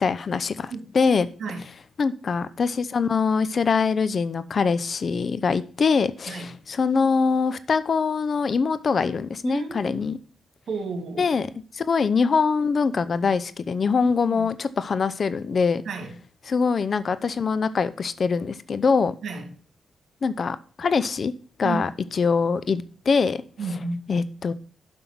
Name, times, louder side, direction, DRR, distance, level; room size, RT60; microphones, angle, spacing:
voice 1, 0.0-1.3 2.0-10.2 11.2-11.5 11.7-15.8 16.5-19.1 20.2-21.3 21.6-23.4 24.1-24.5, left 5 dB, 55° left, 0.6 m, -23 dB
voice 2, 9.4-10.0 10.7-11.2 14.0-14.5 15.8-16.2 19.2-19.5 21.6-21.8 23.6-24.0, right 4 dB, 70° right, 2.6 m, -32 dB
7.9 x 5.5 x 6.0 m
cardioid pair, 70°, 0 cm